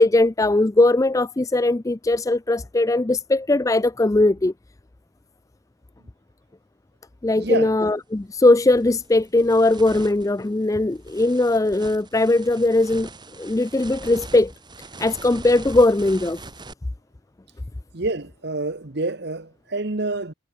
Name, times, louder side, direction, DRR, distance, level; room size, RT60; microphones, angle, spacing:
voice 1, 0.0-4.5 7.2-13.1 13.4-14.5 15.0-16.4, left 2 dB, 15° left, 0.4 m, -19 dB
voice 2, 7.4-7.7 17.9-20.3, right 2 dB, 55° right, 1.2 m, -27 dB
sound 1, 7.9-8.0 8.5-16.7, right 3 dB, 20° right, 2.7 m, -42 dB
head